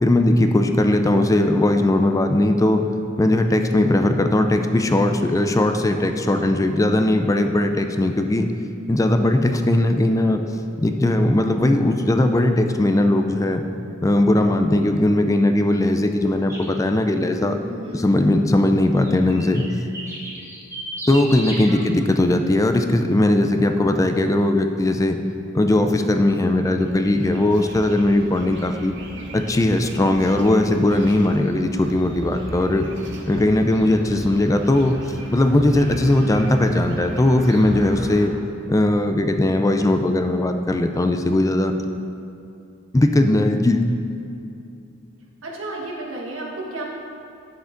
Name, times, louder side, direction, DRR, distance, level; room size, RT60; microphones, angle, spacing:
voice 1, 0.0-2.8 3.2-8.5 8.9-10.4 10.8-13.6 14.0-17.6 17.9-19.6 21.1-25.2 25.5-28.9 29.3-32.9 33.3-35.0 35.3-38.3 38.7-41.7 42.9-43.8, left 1 dB, 15° left, 6 dB, 0.4 m, -19 dB
sound 1, 16.5-16.7 18.9-21.7, right 1 dB, 15° right, 1.5 m, -34 dB
voice 2, 17.7-18.3 21.7-21.9 45.4-46.8, right 2 dB, 85° right, -2 dB, 1.5 m, -32 dB
sound 2, 25.7-38.3, right 1 dB, 65° right, 0.9 m, -36 dB
9.6 x 6.5 x 3.8 m, 2.6 s
head